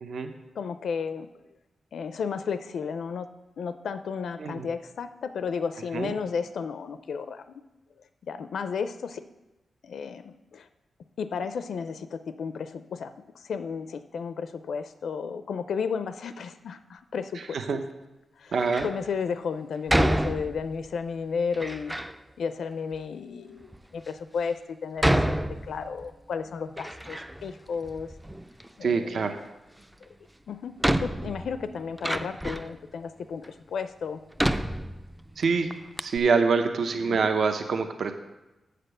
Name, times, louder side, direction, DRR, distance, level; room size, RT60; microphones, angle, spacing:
voice 1, 0.0-0.3 4.4-4.7 5.9-6.1 17.5-17.8 18.5-18.9 28.8-29.4 35.4-35.7 36.0-38.1, right 5 dB, 60° right, 7 dB, 0.6 m, -25 dB
voice 2, 0.6-1.3 1.9-3.3 3.6-7.5 8.2-9.2 9.8-10.7 11.2-17.8 18.4-18.5 18.8-22.0 22.4-28.1 28.8-29.4 30.5-30.7 31.0-34.2 37.1-37.2, left 6 dB, 70° left, 11 dB, 0.4 m, -33 dB
Door, 18.5-19.0 19.9-20.9 21.5-22.2 22.9-23.0 23.7-23.8 25.0-26.1 26.5-27.6 27.8-28.7 30.0-30.1 30.8-32.8 33.4-33.5 34.4-35.4 35.7-35.8 36.0-36.2, right 1 dB, 5° right, 0.3 m, -28 dB
7.6 x 6.6 x 6.6 m, 1.0 s
wide cardioid pair, 155°, 0 cm